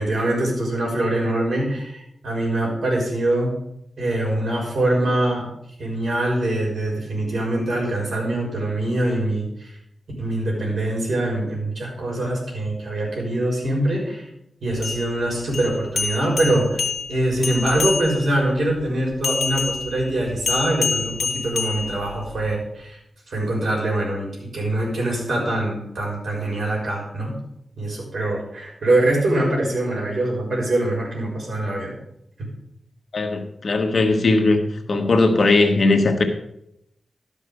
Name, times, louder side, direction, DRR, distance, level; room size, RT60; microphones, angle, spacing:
voice 1, 0.0-3.5 4.0-5.4 5.8-9.7 10.2-14.3 14.6-16.8 17.1-23.0 23.3-27.3 27.8-31.9, right 1 dB, 70° right, -1 dB, 4.2 m, -23 dB
sound 1, 14.7-18.4 19.2-22.4, left 5 dB, 80° left, 1.2 m, -27 dB
voice 2, 33.1-34.6 34.9-36.2, left 3 dB, 55° left, 5 dB, 1.4 m, -18 dB
12.5 x 5.4 x 6.6 m, 0.78 s
wide cardioid pair, 95°, 0 cm